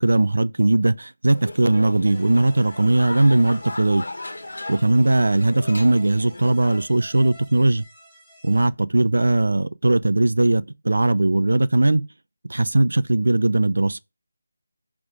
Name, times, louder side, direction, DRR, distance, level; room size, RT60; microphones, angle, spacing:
voice 1, 0.0-4.0 4.7-7.8 8.4-12.0 12.5-14.0, right 2 dB, 75° right, 0.6 m, -19 dB
sound 1, 1.3-6.9, left 2 dB, 80° left, 1.4 m, -36 dB
sound 2, 2.1-8.7, equal, 5° right, 1.9 m, -49 dB
9.8 x 3.6 x 5.0 m
figure-of-eight pair, 165°, 0 cm